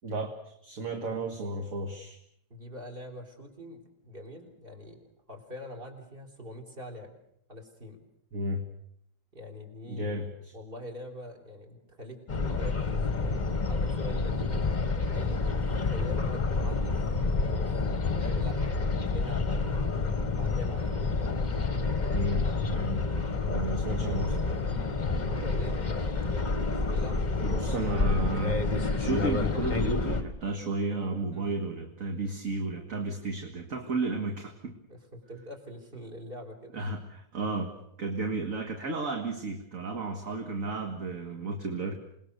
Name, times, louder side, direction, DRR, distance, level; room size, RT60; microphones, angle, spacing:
voice 1, 0.0-2.2 8.3-8.7 9.9-10.5 22.1-23.1 23.5-24.6 27.4-28.6 29.0-34.7 36.7-42.0, right 2 dB, 45° right, 3 dB, 2.1 m, -33 dB
voice 2, 2.5-7.1 7.5-8.0 9.3-10.3 10.5-13.1 13.7-14.7 15.1-17.0 17.4-19.9 20.3-21.2 25.4-26.6 26.9-27.8 31.3-31.6 34.9-36.8, equal, 30° right, 2 dB, 4.0 m, -44 dB
sound 1, 12.3-30.2, left 3 dB, 25° left, 1.4 m, -29 dB
28.0 x 19.5 x 6.8 m, 0.74 s
omnidirectional pair, 2.0 m